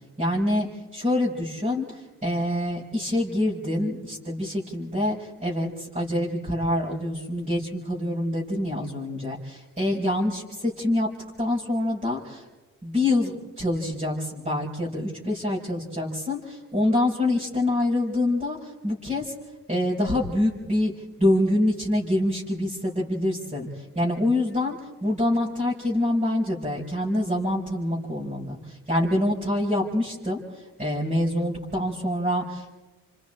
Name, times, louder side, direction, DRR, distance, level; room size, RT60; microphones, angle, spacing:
voice 1, 0.2-0.7 0.9-11.1 11.4-12.5 12.8-19.3 19.7-20.9 21.2-32.7, left 1 dB, 20° right, -6 dB, 4.9 m, -26 dB
29.0 x 25.5 x 4.4 m, 1.2 s
cardioid pair, 90°, 33 cm